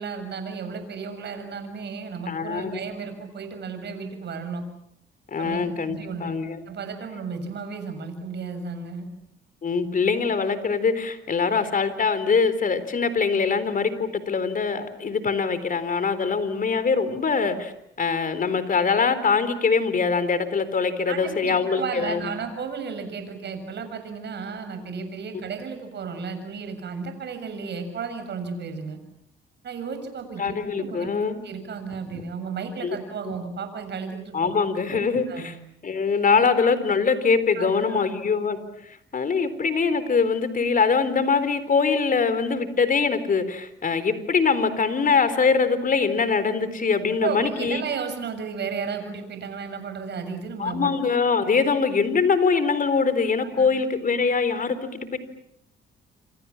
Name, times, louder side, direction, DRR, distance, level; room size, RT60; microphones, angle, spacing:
voice 1, 0.0-4.6 5.4-6.3 6.7-9.1 21.1-29.0 29.6-31.1 31.4-34.5 35.3-35.5 36.4-36.5 37.6-38.1 47.2-50.9 53.6-53.7, right 5 dB, 60° right, 8 dB, 7.1 m, -33 dB
voice 2, 2.3-2.8 5.3-6.6 9.6-17.7 18.0-22.2 30.4-31.4 32.1-32.2 32.8-33.0 34.3-35.5 35.8-38.6 38.9-47.8 50.6-55.2, left 5 dB, 45° left, 13 dB, 4.0 m, -23 dB
28.5 x 26.5 x 7.3 m, 0.75 s
cardioid pair, 90°, 20 cm